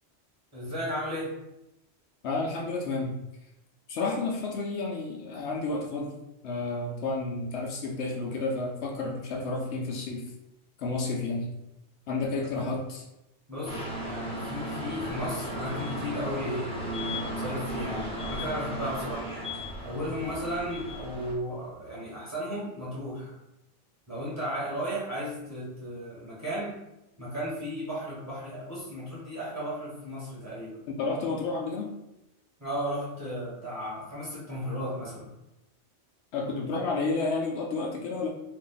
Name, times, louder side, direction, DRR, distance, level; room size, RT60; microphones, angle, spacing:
voice 1, 0.5-1.3 12.3-12.7 13.5-19.3 19.8-23.3 24.1-26.8 27.2-30.8 32.6-35.3, equal, 15° right, -8 dB, 1.2 m, -35 dB
voice 2, 2.2-3.1 3.9-6.1 6.4-10.3 10.8-11.5 12.1-13.0 30.9-31.9 36.3-38.3, left 3 dB, 75° left, -1 dB, 0.8 m, -31 dB
sound 1, 13.7-21.3, equal, 5° left, 0.5 m, -35 dB
2.6 x 2.4 x 3.8 m, 0.90 s
omnidirectional pair, 1.2 m